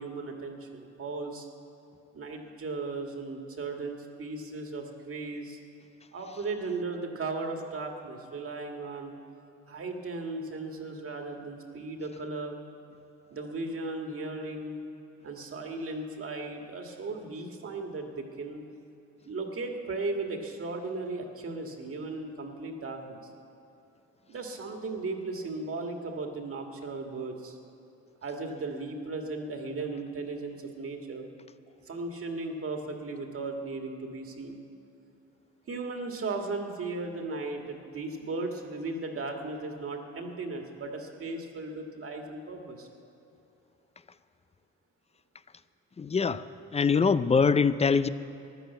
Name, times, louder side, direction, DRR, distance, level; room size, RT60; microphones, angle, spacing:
voice 1, 0.0-1.5 2.1-5.6 6.1-9.2 9.7-12.6 13.3-14.8 15.2-18.6 19.3-23.2 24.3-27.6 28.2-31.3 31.8-34.6 35.7-42.9, right 3 dB, 45° right, 3 dB, 1.9 m, -36 dB
voice 2, 46.0-46.5 46.7-48.1, left 5 dB, 20° left, 14 dB, 0.5 m, -23 dB
14.5 x 11.0 x 8.0 m, 2.7 s
cardioid pair, 90°, 30 cm